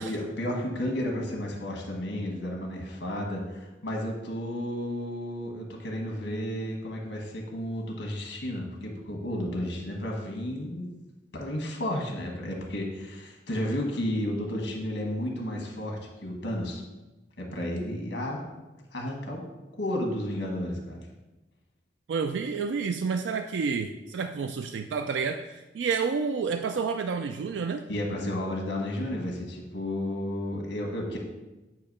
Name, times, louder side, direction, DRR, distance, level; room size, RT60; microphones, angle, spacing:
voice 1, 0.0-10.8 11.3-16.8 17.4-18.4 18.9-19.4 19.8-21.0 27.9-31.2, left 1 dB, 85° left, 0 dB, 1.4 m, -32 dB
voice 2, 22.1-27.8, right 5 dB, 90° right, 7 dB, 0.3 m, -29 dB
8.3 x 2.8 x 5.4 m, 1.1 s
head